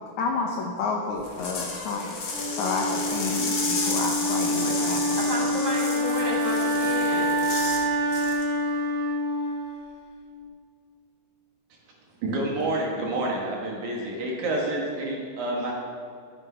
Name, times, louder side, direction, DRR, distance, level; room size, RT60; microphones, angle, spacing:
voice 1, 0.2-2.1 2.5-5.2, left 4 dB, 80° left, 2 dB, 1.7 m, -30 dB
sound 1, 1.2-7.8 8.1-8.4, left 3 dB, 50° left, 1.3 m, -32 dB
Wind instrument woodwind instrument, 2.3-10.3, equal, 80° right, 1.2 m, -27 dB
voice 2, 4.4-7.4, left 1 dB, 10° right, -5 dB, 1.3 m, -32 dB
voice 3, 12.2-15.7, right 1 dB, 60° right, -1 dB, 2.4 m, -28 dB
13.0 x 8.4 x 5.6 m, 2.3 s
omnidirectional pair, 4.6 m